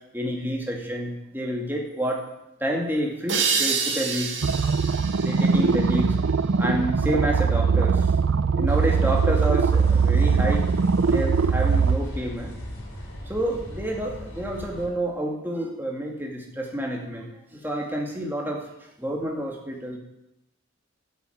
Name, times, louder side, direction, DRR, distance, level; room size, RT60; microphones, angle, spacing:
voice 1, 0.1-2.3 2.6-4.3 5.2-6.2 6.6-8.1 8.5-10.7 11.1-12.5 13.3-18.6 19.0-20.0, right 1 dB, 10° right, -1 dB, 2.3 m, -29 dB
sound 1, 3.3-6.7, right 5 dB, 60° right, 2.4 m, -28 dB
sound 2, 4.4-12.0, right 5 dB, 80° right, 0.5 m, -21 dB
sound 3, 8.7-14.9, equal, 85° left, 4.4 m, -36 dB
12.0 x 8.4 x 9.4 m, 0.90 s
head